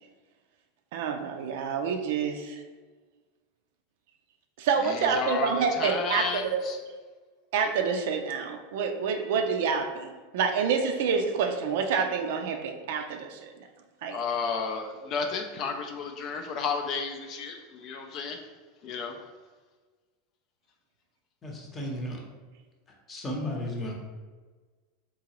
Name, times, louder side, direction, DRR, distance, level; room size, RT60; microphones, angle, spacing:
voice 1, 0.9-2.6 4.6-6.7 7.5-13.5 14.0-14.2, right 6 dB, 70° right, 5 dB, 0.4 m, -28 dB
voice 2, 4.8-6.8 14.1-18.4 18.8-19.2, left 5 dB, 45° left, 4 dB, 0.4 m, -32 dB
voice 3, 21.4-22.2 23.1-23.9, left 1 dB, 25° left, 0 dB, 0.8 m, -34 dB
3.7 x 2.8 x 3.0 m, 1.4 s
supercardioid pair, 130°, 0 cm